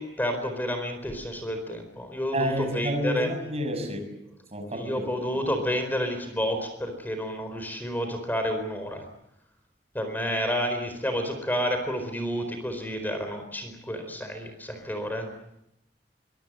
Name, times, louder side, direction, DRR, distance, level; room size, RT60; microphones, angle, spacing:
voice 1, 0.0-3.3 4.7-9.1 9.9-15.3, equal, 10° left, 7 dB, 4.4 m, -30 dB
voice 2, 2.3-4.1 4.5-5.4, equal, 40° right, 6 dB, 6.5 m, -30 dB
24.5 x 23.5 x 7.8 m, 0.81 s
head